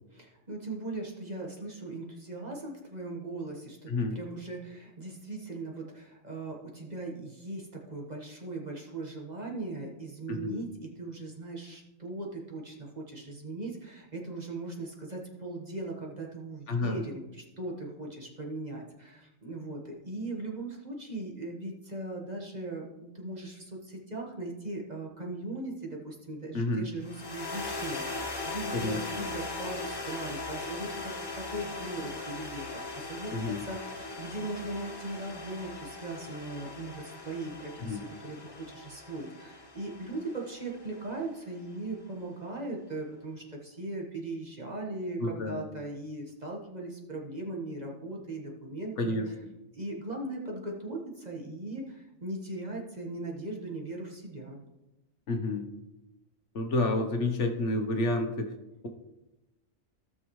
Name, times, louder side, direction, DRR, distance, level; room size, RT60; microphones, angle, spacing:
voice 1, 0.1-49.4 49.7-54.6, right 2 dB, 30° right, -1 dB, 1.5 m, -39 dB
voice 2, 3.9-4.2 10.3-10.6 16.7-17.0 26.5-26.9 28.7-29.0 33.3-33.6 37.8-38.0 45.2-45.6 49.0-49.3 55.3-55.7 56.5-58.5, left 2 dB, 60° left, 4 dB, 1.3 m, -29 dB
sound 1, 27.0-41.5, left 3 dB, 20° left, 1.0 m, -39 dB
16.0 x 6.2 x 3.1 m, 0.96 s
omnidirectional pair, 1.4 m